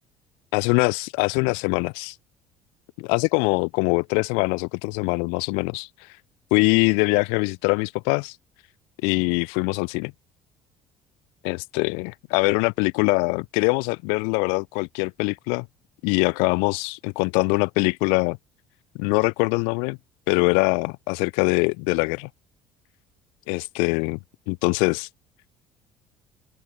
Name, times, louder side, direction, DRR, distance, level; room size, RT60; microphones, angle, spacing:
voice 1, 0.5-2.1 3.0-5.9 6.5-8.3 9.0-10.1 11.4-15.6 16.0-18.4 19.0-20.0 20.3-22.3 23.5-24.2 24.5-25.1, left 40 dB or more, 90° left, 6.8 m, -23 dB
open air
cardioid pair, 100°, 9 cm